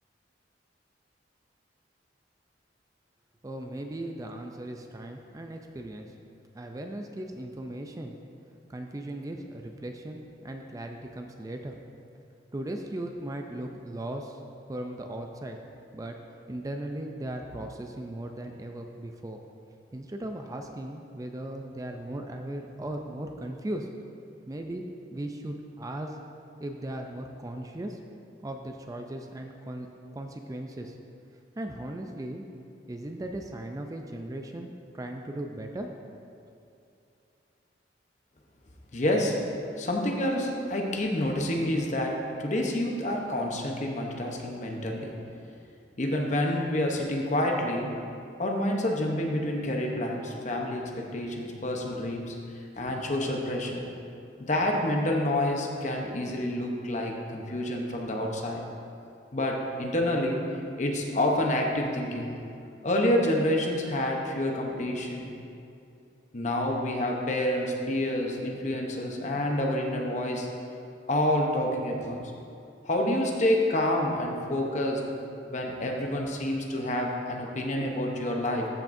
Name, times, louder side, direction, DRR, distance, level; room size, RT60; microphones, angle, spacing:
voice 1, 3.4-6.1 6.5-8.2 8.7-11.8 12.5-14.4 14.7-15.6 15.9-16.2 16.5-19.4 19.9-23.9 24.5-24.8 25.1-26.2 26.6-28.0 28.4-29.9 30.1-31.0 31.6-32.4 32.9-36.0, right 1 dB, 20° right, 4 dB, 0.4 m, -37 dB
voice 2, 38.9-39.4 39.8-45.2 46.0-48.0 48.4-52.4 52.8-53.9 54.4-58.6 59.3-60.5 60.8-62.3 62.8-65.3 66.3-70.5 71.1-72.3 72.9-75.0 75.4-78.7, left 1 dB, 40° left, 1 dB, 0.8 m, -28 dB
13.5 x 5.9 x 2.6 m, 2.6 s
head